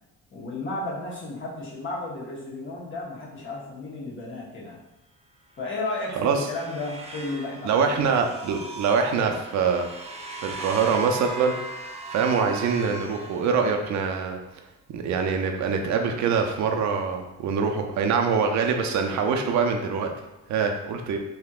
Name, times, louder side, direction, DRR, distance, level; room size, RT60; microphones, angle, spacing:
voice 1, 0.3-4.8 5.6-8.0, left 2 dB, 40° left, -5 dB, 1.2 m, -33 dB
sound 1, 5.7-14.0, right 3 dB, 20° right, 0.5 m, -38 dB
voice 2, 6.2-6.5 7.6-10.1 10.4-11.5 12.1-14.4 14.9-20.1 20.5-21.2, right 5 dB, 70° right, 4 dB, 0.5 m, -24 dB
3.5 x 2.8 x 2.4 m, 0.97 s
cardioid pair, 90°, 30 cm